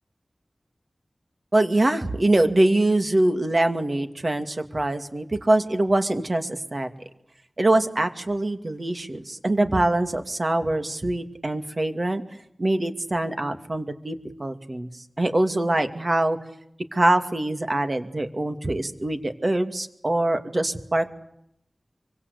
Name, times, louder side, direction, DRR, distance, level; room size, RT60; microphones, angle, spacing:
voice 1, 1.5-6.9 7.6-12.2 12.6-16.4 16.9-21.1, right 1 dB, 40° right, 7 dB, 2.5 m, -24 dB
25.0 x 25.0 x 8.4 m, 0.75 s
wide cardioid pair, 70°, 0 cm